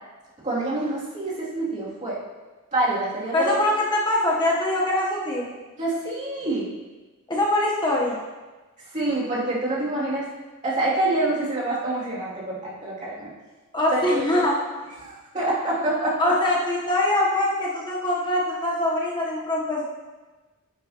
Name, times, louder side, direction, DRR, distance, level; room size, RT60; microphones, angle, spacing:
voice 1, 0.4-2.2 2.7-3.6 5.8-6.7 8.9-10.2 10.6-13.3 13.9-14.2 15.0-16.4, right 2 dB, 35° right, -7 dB, 2.5 m, -26 dB
voice 2, 3.3-5.5 7.3-8.2 13.7-14.5 16.2-19.8, left 1 dB, 20° left, -3 dB, 0.9 m, -23 dB
9.8 x 8.5 x 2.9 m, 1.3 s
head